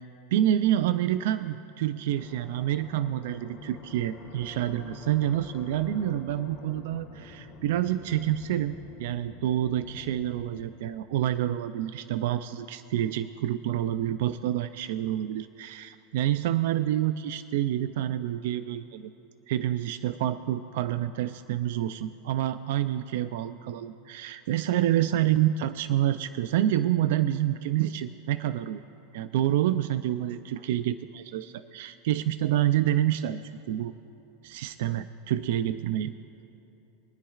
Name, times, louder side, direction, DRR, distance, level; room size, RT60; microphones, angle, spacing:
voice 1, 0.3-19.1 19.5-28.8 29.1-33.4 33.7-33.9 34.4-36.1, right 12 dB, 70° right, 12 dB, 0.3 m, -28 dB
sound 1, 2.1-10.6, left 4 dB, 40° left, 2.5 m, -47 dB
23.0 x 9.9 x 2.4 m, 2.9 s
supercardioid pair, 150°, 0 cm